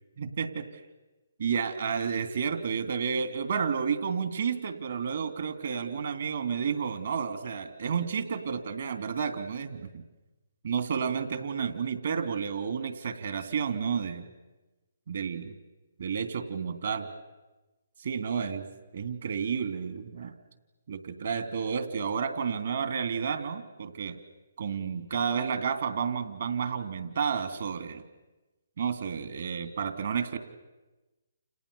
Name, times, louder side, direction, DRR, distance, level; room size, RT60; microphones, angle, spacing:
voice 1, 0.2-0.7 1.4-10.0 10.6-14.2 15.1-15.6 16.0-17.1 18.0-18.6 18.9-20.3 20.9-24.2 24.6-28.0 28.8-30.4, right 6 dB, 65° right, 8 dB, 3.0 m, -31 dB
30.0 x 28.5 x 7.0 m, 1.1 s
figure-of-eight pair, 140°, 0 cm